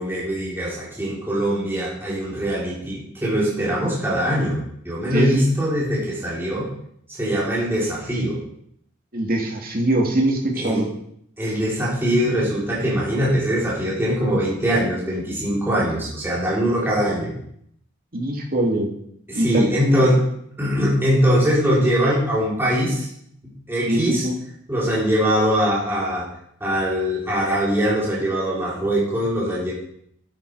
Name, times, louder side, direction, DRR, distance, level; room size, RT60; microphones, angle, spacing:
voice 1, 0.0-6.7 7.2-8.4 10.5-10.9 11.4-17.3 19.3-20.2 20.6-23.1 23.4-24.3 24.7-26.3 26.6-29.7, equal, 10° right, -7 dB, 4.3 m, -22 dB
voice 2, 9.1-10.9 18.1-18.9 19.3-20.0 23.9-24.3, right 1 dB, 50° right, 1 dB, 2.6 m, -22 dB
12.0 x 10.5 x 4.9 m, 0.71 s
head